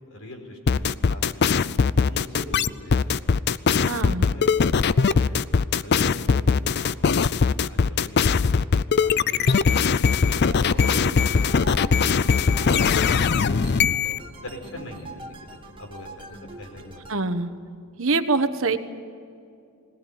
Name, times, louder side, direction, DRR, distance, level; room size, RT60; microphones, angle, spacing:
voice 1, 0.0-1.7 2.1-3.2 4.3-5.4 5.8-6.5 6.8-9.8 10.3-12.6 13.0-15.1 15.5-17.0, left 1 dB, 75° left, 2 dB, 4.8 m, -41 dB
sound 1, 0.7-14.2, left 5 dB, 50° left, 0.5 m, -20 dB
voice 2, 3.8-4.3 17.1-17.5 18.0-18.8, right 3 dB, 65° right, 9 dB, 1.2 m, -24 dB
sound 2, 10.3-17.2, right 2 dB, 25° right, 1.7 m, -42 dB
21.5 x 18.5 x 9.5 m, 2.4 s
head